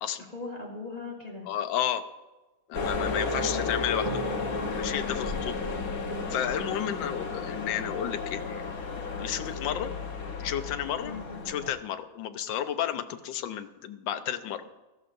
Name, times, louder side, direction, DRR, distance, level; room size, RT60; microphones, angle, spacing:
voice 1, 0.3-1.5 3.3-3.7 5.4-6.3 11.0-11.5, left 3 dB, 20° left, -4 dB, 2.5 m, -40 dB
voice 2, 1.5-2.0 2.7-4.2 4.8-5.6 6.3-8.7 9.0-9.9 10.4-11.1 11.4-14.6, left 10 dB, 85° left, 9 dB, 1.4 m, -32 dB
sound 1, 2.7-11.7, left 4 dB, 55° left, 1.5 m, -33 dB
sound 2, 4.1-7.5, right 4 dB, 45° right, 1.5 m, -42 dB
16.5 x 13.5 x 2.6 m, 1.1 s
omnidirectional pair, 1.9 m